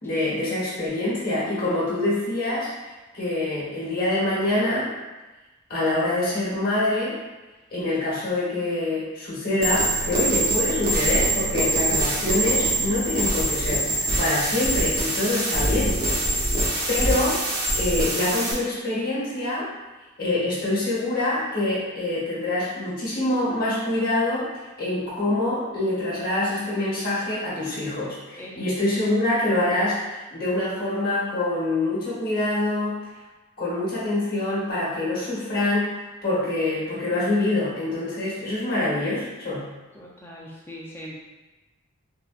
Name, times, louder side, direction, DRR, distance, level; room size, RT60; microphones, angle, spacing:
voice 1, 0.0-4.9 5.7-7.1 7.7-16.0 16.9-17.4 17.8-19.7 20.2-24.5 24.8-33.0 33.6-39.6, left 2 dB, 45° left, -7 dB, 1.1 m, -25 dB
sound 1, 9.6-18.5, right 1 dB, 45° right, 0.6 m, -24 dB
voice 2, 40.0-41.1, equal, 10° left, -5 dB, 0.4 m, -40 dB
3.7 x 2.2 x 2.4 m, 1.1 s
head